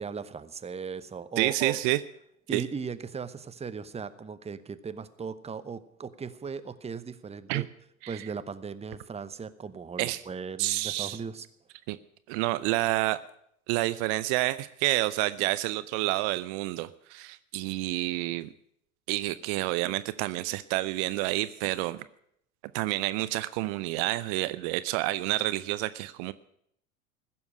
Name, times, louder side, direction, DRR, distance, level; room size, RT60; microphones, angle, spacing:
voice 1, 0.0-1.8 2.5-7.7 8.1-11.5, right 6 dB, 15° right, 13 dB, 0.9 m, -37 dB
voice 2, 1.4-2.0 2.5-2.6 7.5-7.6 8.0-8.3 10.0-10.2 10.6-11.2 11.9-12.0 12.3-13.2 13.7-18.5 19.1-22.0 22.7-26.3, right 18 dB, 60° right, 15 dB, 0.7 m, -29 dB
15.5 x 7.1 x 9.9 m, 0.72 s
hypercardioid pair, 75°, 40 cm